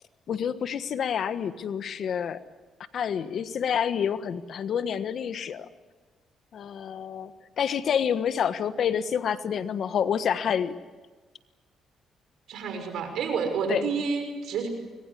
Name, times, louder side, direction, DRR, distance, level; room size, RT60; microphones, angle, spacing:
voice 1, 0.3-2.4 2.9-5.7 6.5-7.3 7.6-10.8 13.7-13.8, left 8 dB, 60° left, 11 dB, 1.3 m, -28 dB
voice 2, 12.5-14.7, right 5 dB, 80° right, 6 dB, 5.9 m, -29 dB
25.0 x 21.5 x 8.5 m, 1.3 s
cardioid pair, 90°, 0 cm